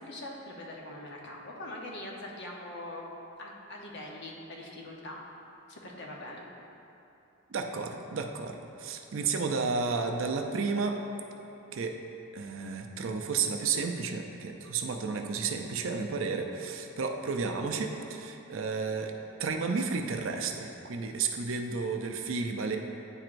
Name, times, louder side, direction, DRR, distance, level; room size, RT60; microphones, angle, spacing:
voice 1, 0.0-3.1 3.4-5.2 5.7-6.5, left 1 dB, 50° left, -1 dB, 0.8 m, -42 dB
voice 2, 7.5-11.0 11.7-12.0 12.3-19.1 19.4-22.8, right 4 dB, 60° right, 4 dB, 0.4 m, -32 dB
9.7 x 4.5 x 2.5 m, 2.9 s
head